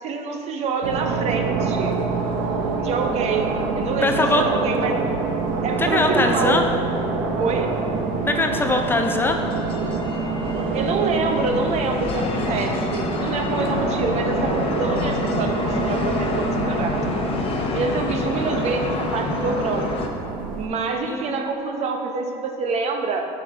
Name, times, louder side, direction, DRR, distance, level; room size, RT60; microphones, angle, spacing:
voice 1, 0.0-2.0 2.8-5.0 5.6-6.6 7.4-7.7 10.7-17.0 17.7-19.9 20.6-23.3, right 4 dB, 50° right, 4 dB, 0.8 m, -26 dB
sound 1, 0.8-20.7, right 4 dB, 85° right, 0.8 m, -26 dB
sound 2, 1.6-20.1, left 4 dB, 40° left, 0.8 m, -30 dB
voice 2, 4.0-4.4 5.8-6.7 8.3-9.4 21.1-21.3, left 2 dB, 15° left, 4 dB, 0.5 m, -21 dB
5.6 x 5.5 x 4.9 m, 2.6 s
cardioid pair, 115°, 14 cm